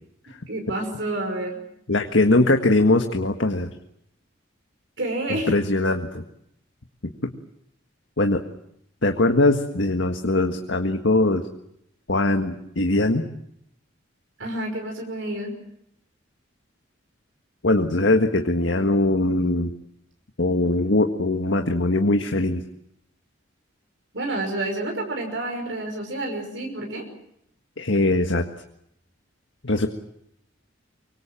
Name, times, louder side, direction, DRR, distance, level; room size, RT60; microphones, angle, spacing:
voice 1, 0.5-1.6 5.0-5.5 14.4-15.6 24.1-27.0, right 1 dB, 65° right, 3 dB, 5.7 m, -29 dB
voice 2, 1.9-3.7 5.5-6.2 7.2-7.3 8.2-8.4 9.0-11.4 12.1-13.2 17.6-19.7 20.4-22.6 27.8-28.4 29.6-29.9, left 2 dB, 70° left, 4 dB, 1.7 m, -21 dB
25.0 x 24.5 x 7.5 m, 0.76 s
head